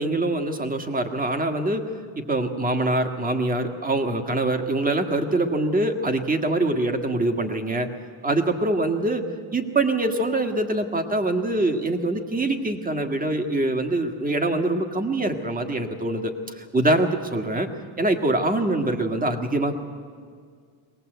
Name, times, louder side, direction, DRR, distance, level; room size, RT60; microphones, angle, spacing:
voice 1, 0.0-1.9 2.2-7.9 8.2-9.2 9.5-17.7 18.0-19.8, right 2 dB, 15° right, 7 dB, 1.8 m, -24 dB
22.5 x 18.5 x 8.0 m, 2.1 s
cardioid pair, 120°, 48 cm